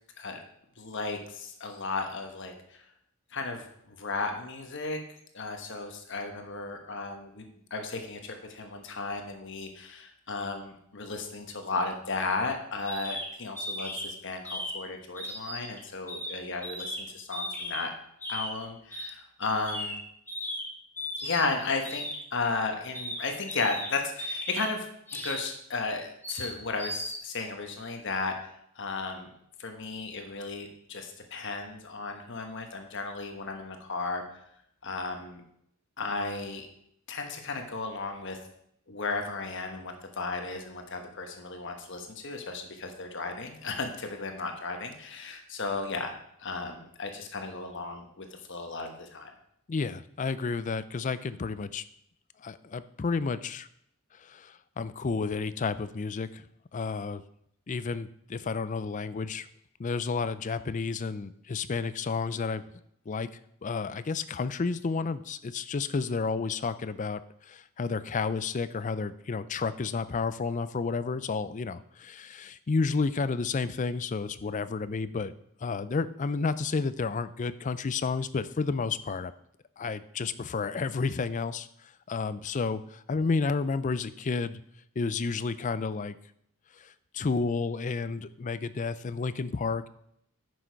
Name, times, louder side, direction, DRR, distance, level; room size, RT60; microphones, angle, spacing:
voice 1, 0.8-2.8 3.3-5.0 5.3-7.4 7.7-17.9 18.3-20.0 21.2-22.1 22.3-24.9 25.1-29.3 29.6-34.2 34.8-35.4 36.0-36.7 37.1-38.4 38.9-46.1 46.4-49.3, left 3 dB, 60° left, 5 dB, 1.2 m, -34 dB
sound 1, 12.9-13.3 13.6-14.1 14.4-14.8 15.1-15.8 16.1-16.3 16.6-17.0 17.3-17.8 18.2-18.5 18.9-19.1 19.4-20.0 20.3-20.6 21.0-21.5 21.8-22.2 22.9-23.2 23.5-23.9 24.2-24.7 25.1-25.4 26.2-26.5 26.8-27.2, equal, 10° left, 1.5 m, -36 dB
voice 2, 49.7-51.8 52.4-53.7 54.1-56.4 56.7-57.2 57.7-59.5 59.8-62.6 63.1-63.3 63.6-75.3 75.6-79.3 79.8-84.6 85.0-86.2 86.8-89.9, left 4 dB, 35° left, 15 dB, 0.4 m, -31 dB
9.7 x 6.3 x 4.6 m, 0.72 s
head